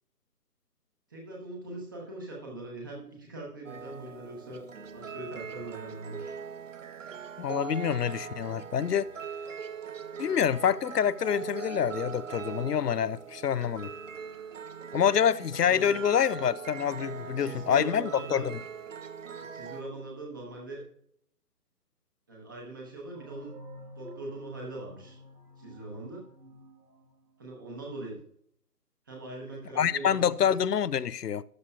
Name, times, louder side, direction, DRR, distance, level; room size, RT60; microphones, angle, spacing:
voice 1, 1.1-4.7 4.9-6.3 15.6-16.0 17.2-18.5 19.4-20.8 22.3-23.6 24.0-25.2 25.6-26.2 27.4-28.2 29.1-30.5, right 2 dB, 15° right, 0.9 m, -41 dB
sound 1, 3.6-19.8, right 6 dB, 55° right, 0.7 m, -41 dB
voice 2, 7.4-9.1 10.2-13.9 14.9-18.6 29.8-31.4, left 8 dB, 85° left, 0.5 m, -27 dB
sound 2, 23.1-27.7, equal, 75° right, 1.7 m, -50 dB
12.5 x 8.4 x 2.4 m
figure-of-eight pair, 145°, 46 cm